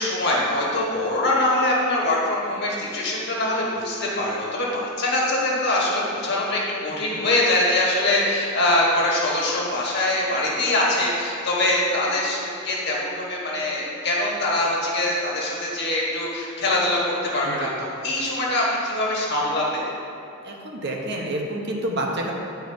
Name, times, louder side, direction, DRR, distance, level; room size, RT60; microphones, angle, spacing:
voice 1, 0.0-19.8, left 1 dB, 55° left, -4 dB, 1.6 m, -23 dB
voice 2, 20.4-22.3, right 1 dB, 55° right, 0 dB, 0.9 m, -28 dB
9.6 x 4.6 x 4.7 m, 2.6 s
head